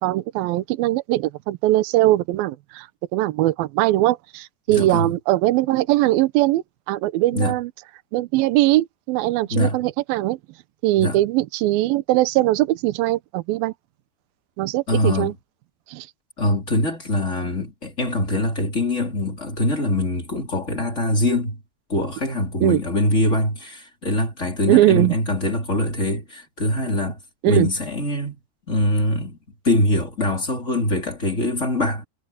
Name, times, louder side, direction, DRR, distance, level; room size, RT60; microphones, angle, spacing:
voice 1, 0.0-7.7 8.1-10.4 10.8-13.7 14.6-15.3 15.9-16.1 22.6-22.8 24.7-25.1 27.4-27.7, right 16 dB, 75° right, 2.4 m, -20 dB
voice 2, 4.7-5.1 7.3-7.5 9.5-9.8 11.0-11.2 14.9-15.4 16.4-21.6 21.9-27.2 27.5-28.4 28.7-29.4 29.6-32.1, left 1 dB, 20° left, 3.4 m, -23 dB
omnidirectional pair, 4.8 m